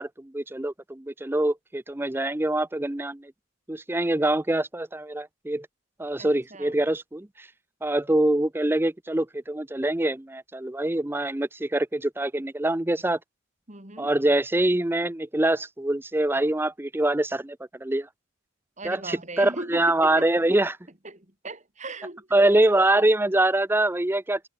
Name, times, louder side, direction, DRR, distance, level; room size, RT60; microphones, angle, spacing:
voice 1, 0.0-3.3 3.7-5.7 6.0-7.5 7.8-13.2 14.0-18.1 18.8-20.8 22.3-24.4, right 1 dB, 10° right, 0.5 m, -24 dB
voice 2, 6.2-6.7 13.7-14.1 18.8-20.3 21.0-22.3, right 2 dB, 30° right, 3.0 m, -38 dB
head